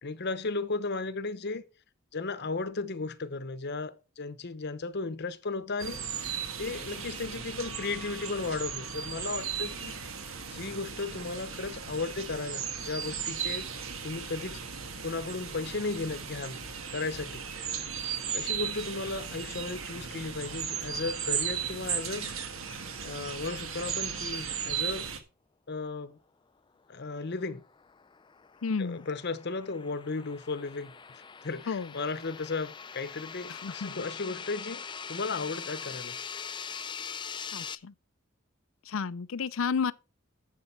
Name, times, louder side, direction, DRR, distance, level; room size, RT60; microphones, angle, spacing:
voice 1, 0.0-1.6 2.1-9.9 10.5-13.7 14.0-14.6 15.0-16.6 16.9-17.5 18.3-22.4 22.7-25.1 25.7-26.2 26.9-27.6 28.8-36.2, left 3 dB, 55° left, 0.9 m, -35 dB
sound 1, 5.8-25.2, right 7 dB, 80° right, 1.7 m, -36 dB
sound 2, 27.3-37.8, left 6 dB, 25° left, 0.4 m, -42 dB
voice 2, 28.6-29.1 31.7-31.9 33.5-34.0 37.5-37.9 38.8-39.9, left 5 dB, 75° left, 0.5 m, -32 dB
11.0 x 7.6 x 4.5 m
head